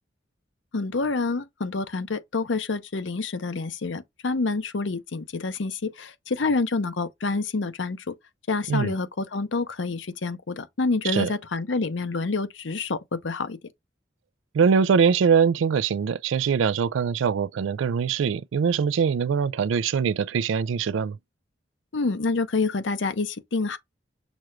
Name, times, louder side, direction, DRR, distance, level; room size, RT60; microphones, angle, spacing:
voice 1, 0.7-8.1 8.5-13.6 21.9-23.8, left 3 dB, 80° left, 0.7 m, -27 dB
voice 2, 14.5-21.2, right 6 dB, 85° right, 0.3 m, -23 dB
6.1 x 2.4 x 3.0 m
head